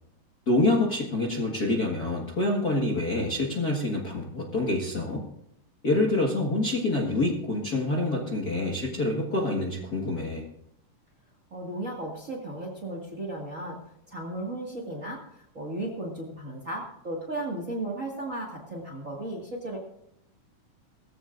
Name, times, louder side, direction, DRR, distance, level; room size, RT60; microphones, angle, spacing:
voice 1, 0.5-5.2 5.8-10.4, left 2 dB, 35° left, -2 dB, 1.7 m, -26 dB
voice 2, 11.5-13.8 14.1-19.8, right 1 dB, 30° right, 0 dB, 1.9 m, -35 dB
19.5 x 15.0 x 2.6 m, 0.76 s
omnidirectional pair, 3.7 m